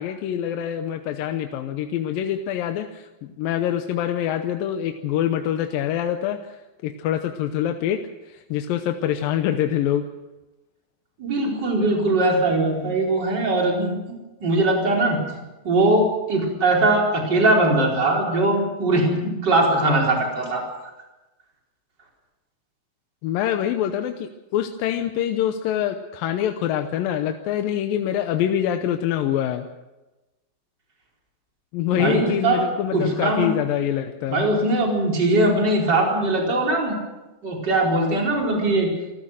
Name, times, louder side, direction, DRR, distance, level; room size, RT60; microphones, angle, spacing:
voice 1, 0.0-6.6 6.8-10.1 23.2-29.7 31.7-34.4, left 10 dB, 80° left, 6 dB, 2.5 m, -25 dB
voice 2, 11.2-13.9 14.4-15.2 15.6-20.6 31.9-32.6 32.9-33.5 34.3-37.0 37.4-38.9, right 2 dB, 30° right, -1 dB, 4.9 m, -20 dB
28.5 x 14.5 x 6.5 m, 1.1 s
omnidirectional pair, 4.2 m